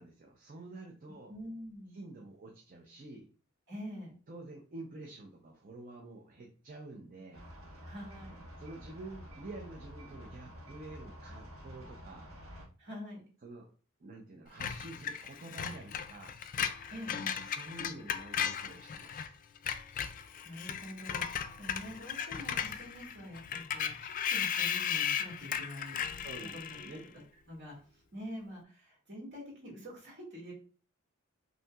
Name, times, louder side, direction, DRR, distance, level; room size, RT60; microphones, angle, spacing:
voice 1, 0.0-1.3 1.9-3.3 4.3-7.5 8.6-12.3 13.4-13.7 14.0-16.4 17.4-19.3 26.2-27.0, right 2 dB, 40° right, 1 dB, 0.6 m, -48 dB
voice 2, 1.3-2.0 3.7-4.1 7.8-8.4 12.8-13.2 16.9-17.4 19.9-26.0 26.3-27.0 27.5-30.5, equal, 55° right, -3 dB, 2.1 m, -46 dB
sound 1, 7.3-12.7, equal, 85° right, 1.4 m, -49 dB
Screech, 14.6-19.3 19.6-27.0, left 8 dB, 40° left, 0.3 m, -36 dB
5.5 x 2.7 x 2.3 m, 0.39 s
head